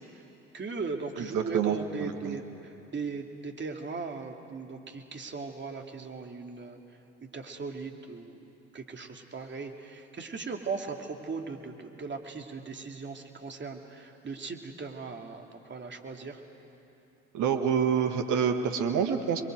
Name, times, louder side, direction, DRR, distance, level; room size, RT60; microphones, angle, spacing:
voice 1, 0.5-6.8 7.2-8.5 8.7-16.4, right 4 dB, 30° right, 3 dB, 2.8 m, -38 dB
voice 2, 1.2-2.4 17.3-19.4, right 7 dB, 50° right, 6 dB, 1.9 m, -27 dB
28.5 x 22.0 x 8.0 m, 3.0 s
figure-of-eight pair, 55°, 38 cm